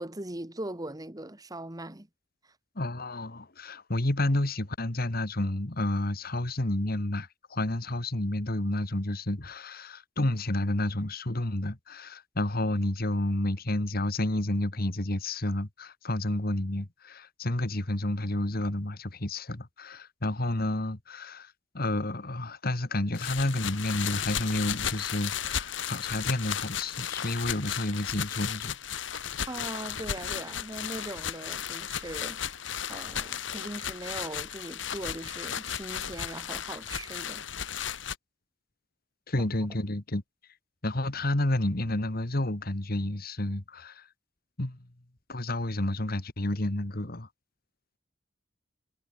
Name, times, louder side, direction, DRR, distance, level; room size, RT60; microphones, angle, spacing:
voice 1, 0.0-2.1 2.4-2.5 29.5-32.4 32.9-37.4, right 1 dB, 20° right, 1.6 m, -40 dB
voice 2, 2.8-28.8 39.3-40.2 40.8-44.1 44.6-44.8 45.3-47.3, left 1 dB, 50° left, 1.9 m, -30 dB
sound 1, 23.1-38.2, left 9 dB, 75° left, 1.4 m, -35 dB
head